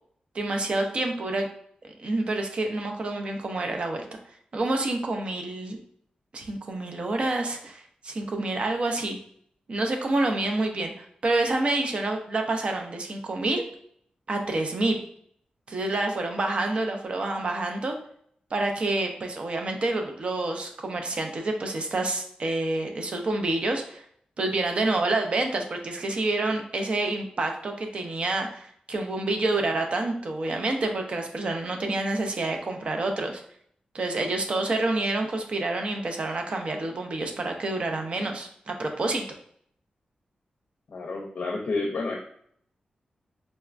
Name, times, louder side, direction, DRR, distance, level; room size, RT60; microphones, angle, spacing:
voice 1, 0.3-1.5 2.0-4.0 4.5-5.8 6.3-9.2 9.7-13.6 14.3-15.0 15.7-18.0 18.5-24.0 24.4-33.4 33.9-39.2, right 2 dB, 45° right, 3 dB, 0.5 m, -28 dB
voice 2, 40.9-42.2, left 3 dB, 65° left, 0 dB, 0.5 m, -30 dB
4.0 x 2.2 x 2.4 m, 0.65 s
wide cardioid pair, 150°, 3 cm